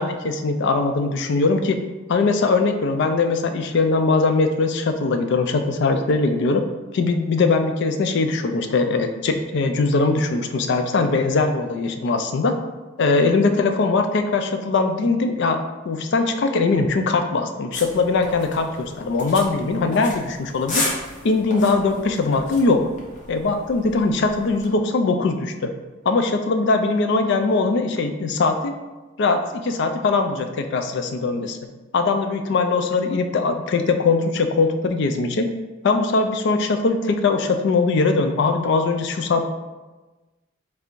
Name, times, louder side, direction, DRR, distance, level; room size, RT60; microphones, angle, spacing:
voice 1, 0.0-1.8 2.1-6.6 6.9-12.5 13.0-15.6 15.9-20.9 21.2-22.8 23.3-25.7 26.1-28.8 29.2-31.6 31.9-35.5 35.8-39.4, left 3 dB, 60° left, 7 dB, 0.4 m, -21 dB
sound 1, 17.7-24.7, left 2 dB, 40° left, 0.8 m, -34 dB
3.3 x 2.5 x 4.5 m, 1.2 s
head